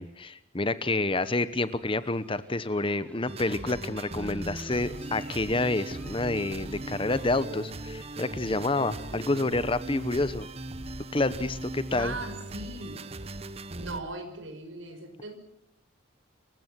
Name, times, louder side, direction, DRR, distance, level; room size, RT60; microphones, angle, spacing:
voice 1, 0.0-10.5 11.1-12.1, left 2 dB, 25° left, 14 dB, 1.0 m, -28 dB
sound 1, 0.9-9.5, left 1 dB, 5° left, 3.0 m, -57 dB
sound 2, 3.3-14.0, right 2 dB, 30° right, 1.2 m, -39 dB
voice 2, 9.1-9.5 12.0-13.0 13.8-15.3, right 2 dB, 80° right, 7 dB, 5.4 m, -39 dB
28.0 x 15.5 x 7.6 m, 0.78 s
head